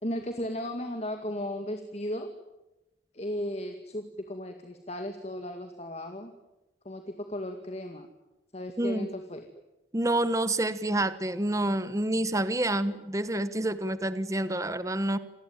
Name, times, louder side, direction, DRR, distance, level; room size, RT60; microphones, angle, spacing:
voice 1, 0.0-2.3 3.1-6.3 6.8-8.1 8.5-9.4, left 1 dB, 35° left, 6 dB, 2.2 m, -35 dB
voice 2, 9.9-15.2, right 1 dB, 20° right, 13 dB, 1.3 m, -28 dB
28.5 x 20.5 x 9.2 m, 1.0 s
head